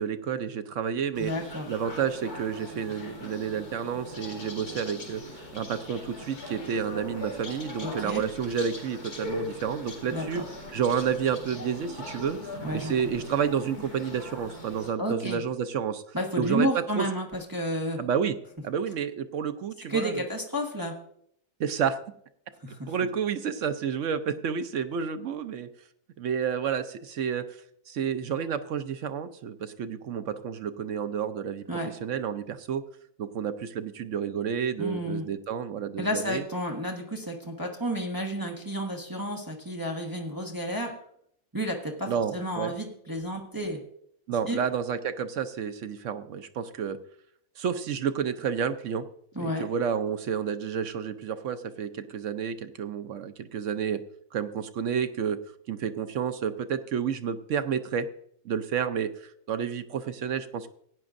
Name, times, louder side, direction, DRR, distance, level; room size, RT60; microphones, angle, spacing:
voice 1, 0.0-1.3 1.7-10.4 10.7-16.0 16.4-17.1 18.0-18.4 18.6-20.2 21.6-22.0 22.9-25.7 26.2-27.6 27.9-31.6 32.0-32.8 33.2-36.4 42.1-42.7 44.3-47.0 47.6-49.0 49.4-54.0 54.3-55.4 55.7-58.1 58.4-60.7, right 7 dB, 65° right, 10 dB, 0.9 m, -30 dB
sound 1, 1.1-14.9, left 2 dB, 80° left, 2.9 m, -40 dB
voice 2, 1.2-1.7 7.8-8.2 10.1-10.4 12.6-12.9 15.0-15.4 16.1-18.0 19.9-20.9 22.6-22.9 31.7-31.9 34.8-35.3 36.0-40.9 41.5-43.8 44.5-44.6 49.3-49.6, equal, 15° right, 0 dB, 1.3 m, -31 dB
17.0 x 9.7 x 2.6 m, 0.69 s
omnidirectional pair, 1.6 m